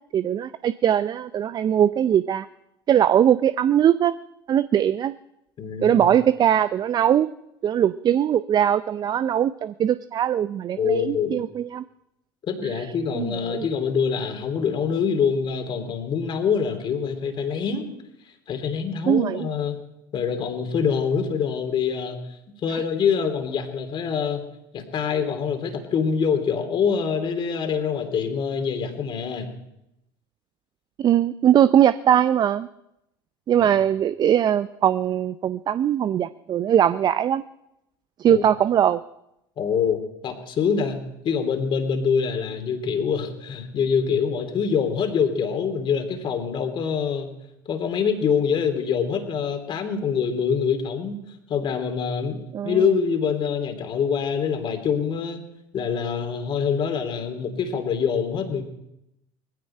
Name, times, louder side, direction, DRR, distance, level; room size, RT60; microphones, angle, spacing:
voice 1, 0.1-2.5 2.9-4.2 4.5-5.1 5.8-7.3 7.6-11.8 12.8-12.9 13.1-13.7 19.1-19.5 22.7-22.8 31.0-32.7 33.5-37.4 38.2-39.0 52.5-52.8, right 10 dB, 35° right, 15 dB, 0.5 m, -21 dB
voice 2, 5.6-6.1 10.8-11.4 12.5-17.9 18.5-19.8 20.1-22.2 22.6-24.5 24.7-29.5 33.6-33.7 38.3-38.4 39.6-47.3 47.7-51.2 51.5-52.4 52.6-55.4 55.7-58.6, left 6 dB, 40° left, 6 dB, 2.9 m, -25 dB
19.5 x 15.5 x 4.4 m, 0.85 s
hypercardioid pair, 85°, 12 cm